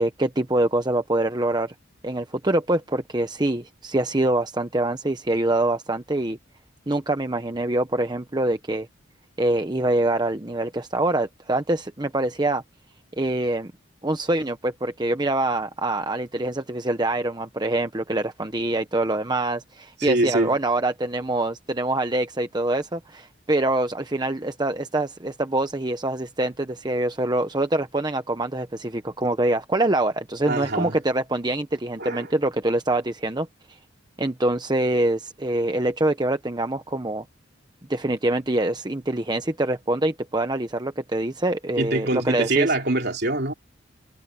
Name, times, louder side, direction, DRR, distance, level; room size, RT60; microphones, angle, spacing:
voice 1, 0.0-1.7 2.0-6.4 6.9-8.9 9.4-12.6 13.2-13.7 14.0-33.5 34.2-37.2 37.9-42.7, right 2 dB, 20° right, 1.0 m, -25 dB
voice 2, 20.0-20.5 30.5-30.9 32.0-32.3 41.8-43.5, right 2 dB, 55° right, 3.2 m, -24 dB
head